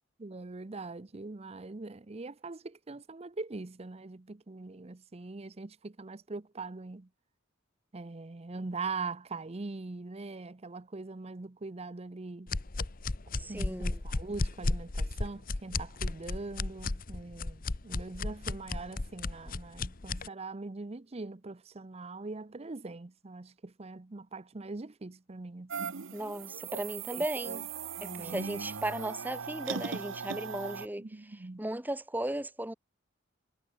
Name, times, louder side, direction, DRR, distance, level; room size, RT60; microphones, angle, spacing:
voice 1, 0.2-7.1 7.9-12.5 13.5-26.0 27.1-27.6 28.0-28.4 31.0-31.6, right 3 dB, 30° right, 0.7 m, -42 dB
sound 1, 12.5-20.3, left 2 dB, 45° left, 1.0 m, -34 dB
voice 2, 13.3-14.0 26.1-27.7 28.0-31.0 31.6-32.7, right 1 dB, 10° right, 1.3 m, -36 dB
sound 2, 25.7-30.9, right 6 dB, 80° right, 0.9 m, -39 dB
head